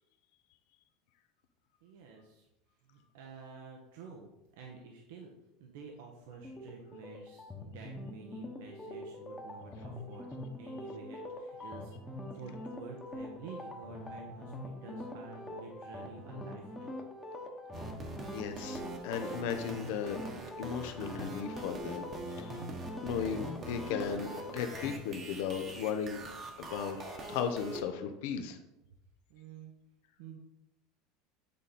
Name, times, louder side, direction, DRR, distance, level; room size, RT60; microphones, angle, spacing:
voice 1, 1.8-2.5 2.9-5.3 5.6-10.3 10.5-11.9 12.3-16.9 29.3-29.7 30.2-30.4, right 4 dB, 85° right, 1 dB, 1.1 m, -49 dB
sound 1, 6.4-25.0, left 1 dB, 10° left, 1.1 m, -44 dB
sound 2, 17.7-27.8, right 3 dB, 35° right, 1.1 m, -44 dB
voice 2, 18.3-20.2 20.6-22.1 22.4-22.7 23.0-26.2 26.6-28.6, left 7 dB, 75° left, 7 dB, 0.8 m, -36 dB
8.6 x 3.8 x 4.2 m, 0.89 s
supercardioid pair, 130°, 0 cm